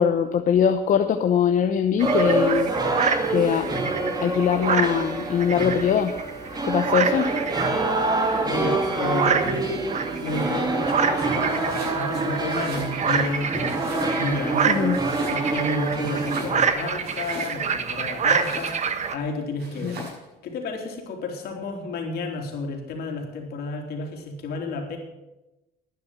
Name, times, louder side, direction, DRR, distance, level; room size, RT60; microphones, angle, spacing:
voice 1, 0.0-2.7 3.3-3.7 4.2-6.1 6.6-7.3 14.7-15.0 19.8-20.0, left 8 dB, 50° left, 6 dB, 0.9 m, -22 dB
sound 1, 2.0-16.7, right 2 dB, 25° right, 2.1 m, -26 dB
sound 2, 2.0-19.2, right 6 dB, 45° right, 1.2 m, -28 dB
voice 2, 8.4-9.7 10.2-11.7 12.0-13.8 14.2-14.9 15.3-18.8 19.1-20.0 20.4-25.0, left 3 dB, 70° left, 2 dB, 3.3 m, -31 dB
Domestic sounds home sounds, 11.5-12.0 12.4-13.3 13.6-14.4 14.9-15.7 16.0-17.8 18.2-19.0 19.6-20.3, equal, 70° right, 6.6 m, -39 dB
11.5 x 9.8 x 7.7 m, 1.0 s
cardioid pair, 110°, 17 cm